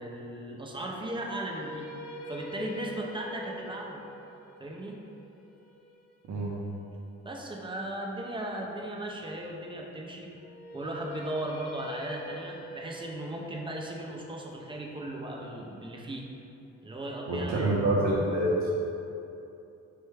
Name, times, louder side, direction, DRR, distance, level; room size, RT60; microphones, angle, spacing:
voice 1, 0.0-1.9 2.3-4.0 4.6-5.0 7.2-10.3 10.7-16.2 16.8-17.8, right 1 dB, 15° right, -1 dB, 0.4 m, -37 dB
sound 1, 1.0-7.1 10.4-16.5, left 1 dB, 60° left, 0.5 m, -45 dB
voice 2, 17.3-18.7, right 1 dB, 65° right, -5 dB, 0.6 m, -26 dB
4.5 x 2.2 x 3.2 m, 2.8 s
cardioid pair, 90°, 30 cm